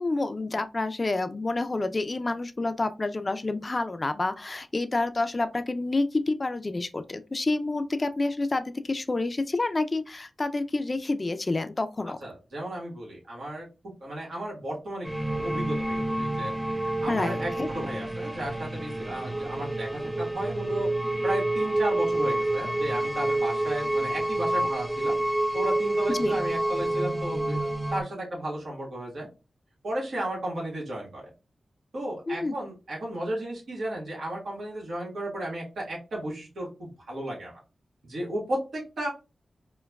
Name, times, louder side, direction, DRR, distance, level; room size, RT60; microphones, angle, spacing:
voice 1, 0.0-12.2 17.1-17.7 26.1-26.4 32.3-32.6, left 2 dB, 40° left, 0.4 m, -28 dB
voice 2, 12.2-13.7 14.0-16.5 16.8-20.9 21.2-25.2 25.5-29.3 29.8-31.3 31.9-37.5 38.0-39.1, right 1 dB, 75° right, 1.4 m, -34 dB
sound 1, 15.0-28.0, right 1 dB, ahead, 0.8 m, -28 dB
4.5 x 2.2 x 2.3 m
cardioid pair, 45°, 0 cm